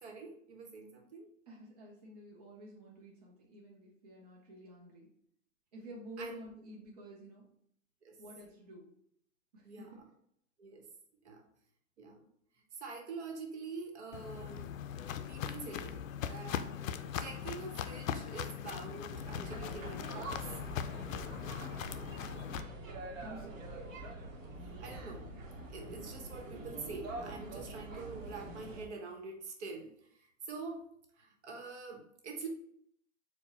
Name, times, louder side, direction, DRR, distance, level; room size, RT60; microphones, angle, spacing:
voice 1, 0.0-1.3 6.2-6.3 8.0-8.2 9.6-9.9 10.6-10.9 11.2-11.5 12.0-12.2 12.7-14.7 15.3-16.0 16.3-20.4 24.5-25.3 25.7-30.8 31.2-32.5, right 4 dB, 60° right, 2 dB, 1.1 m, -46 dB
voice 2, 1.5-5.1 5.7-7.5 8.2-8.9 9.5-10.0 23.1-23.7, right 1 dB, 30° right, -4 dB, 0.6 m, -51 dB
Walk footsteps, 14.1-22.6, left 9 dB, 80° left, 0.5 m, -40 dB
sound 1, 19.1-28.8, right 2 dB, 85° right, 1.2 m, -45 dB
4.7 x 2.2 x 4.2 m, 0.70 s
hypercardioid pair, 175°, 39 cm